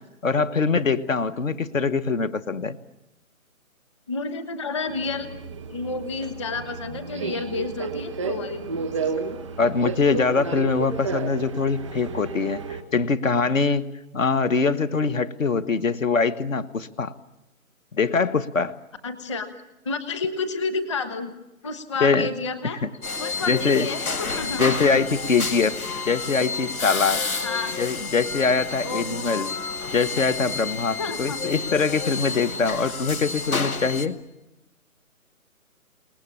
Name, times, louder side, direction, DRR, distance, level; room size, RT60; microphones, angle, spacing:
voice 1, 0.2-2.8 9.6-17.1 17.9-18.7 22.0-22.3 22.8-22.9 23.5-23.9 24.6-25.8 26.1-27.2 27.8-29.5 29.9-34.2, left 4 dB, 65° left, 14 dB, 1.3 m, -23 dB
voice 2, 4.1-5.3 5.7-9.1 19.0-19.5 19.8-21.3 21.6-22.8 23.2-24.6 27.4-27.7 28.8-29.4 31.0-31.4, left 4 dB, 20° left, 10 dB, 1.2 m, -30 dB
Subway metro underground, 4.9-12.8, right 5 dB, ahead, 0.8 m, -32 dB
sound 1, 23.0-34.1, left 4 dB, 80° left, 2.4 m, -30 dB
29.0 x 19.5 x 8.7 m, 0.98 s
hypercardioid pair, 170°, 43 cm